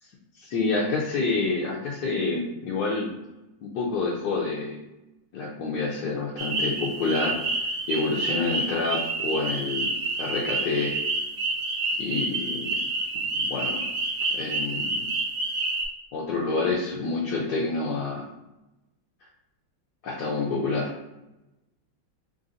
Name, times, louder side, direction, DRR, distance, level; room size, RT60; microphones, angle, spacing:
voice 1, 0.4-3.1 3.6-4.8 5.3-7.4 7.9-9.9 10.2-10.9 12.0-12.7 13.2-13.9 14.3-15.1 16.1-18.2 20.0-20.9, left 3 dB, 70° left, -4 dB, 1.0 m, -28 dB
sound 1, 6.4-15.9, right 3 dB, 70° right, 1.2 m, -29 dB
3.4 x 2.6 x 3.9 m, 0.96 s
omnidirectional pair, 2.3 m